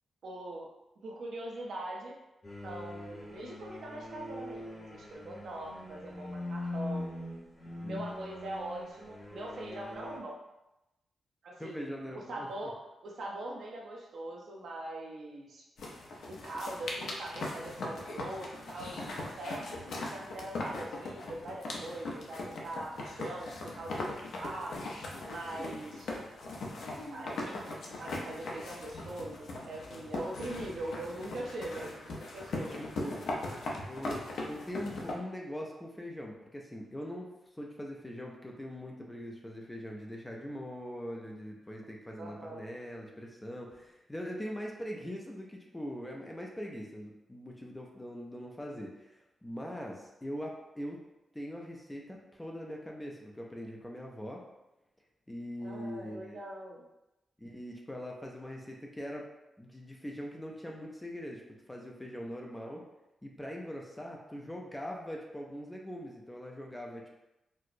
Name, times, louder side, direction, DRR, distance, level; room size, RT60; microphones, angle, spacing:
voice 1, 0.2-0.7 1.0-2.2 2.6-7.1 7.8-10.4 11.4-12.8 13.0-15.6 16.3-24.8 25.3-26.1 27.1-27.6 28.0-32.8 42.2-42.7 55.6-56.8, right 1 dB, 60° right, -2 dB, 0.6 m, -42 dB
sound 1, 2.4-10.2, left 1 dB, 25° left, 0.8 m, -42 dB
voice 2, 11.6-12.7 32.7-33.3 33.9-37.3 37.6-51.0 51.3-54.4 55.3-56.4 57.4-59.3 59.6-62.8 63.2-67.1, equal, 10° left, 0 dB, 0.4 m, -42 dB
sound 2, 15.8-35.1, left 2 dB, 70° left, 0.5 m, -40 dB
4.3 x 2.0 x 2.5 m, 0.93 s
wide cardioid pair, 165°, 0 cm